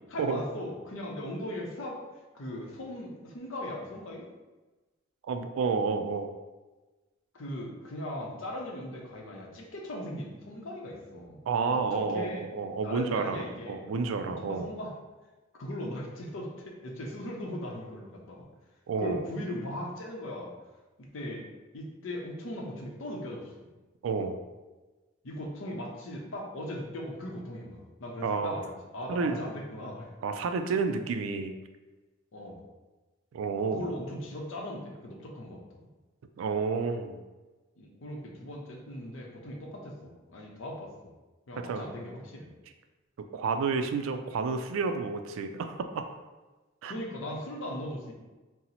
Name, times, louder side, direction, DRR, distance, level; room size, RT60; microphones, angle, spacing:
voice 1, 0.1-2.0 2.3-4.3 7.3-11.4 11.7-12.4 12.8-14.9 15.5-18.5 19.0-20.5 21.0-21.4 21.7-23.7 25.2-30.1 32.3-32.6 33.7-35.6 37.8-40.9 41.5-42.5 46.8-48.1, left 1 dB, 75° left, 0 dB, 0.6 m, -39 dB
voice 2, 5.3-6.3 11.5-14.7 18.9-19.3 24.0-24.4 28.2-28.6 29.1-29.4 30.2-31.5 33.3-33.9 36.4-37.2 41.7-41.8 43.3-46.0 46.8-46.9, right 4 dB, 85° right, 7 dB, 0.3 m, -30 dB
2.8 x 2.0 x 3.9 m, 1.2 s
head